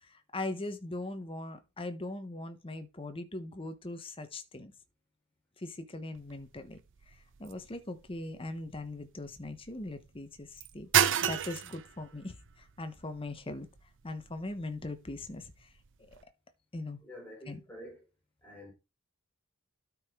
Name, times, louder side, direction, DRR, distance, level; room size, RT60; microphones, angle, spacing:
voice 1, 0.0-4.7 5.6-6.8 7.1-10.9 11.2-13.7 14.0-15.7 16.7-17.0 17.5-17.6, left 2 dB, 25° left, 0.9 m, -40 dB
sound 1, 6.1-16.2, right 9 dB, 55° right, 0.7 m, -35 dB
voice 2, 17.0-18.1 18.4-18.7, equal, 10° left, 3.7 m, -48 dB
12.5 x 4.8 x 3.6 m
head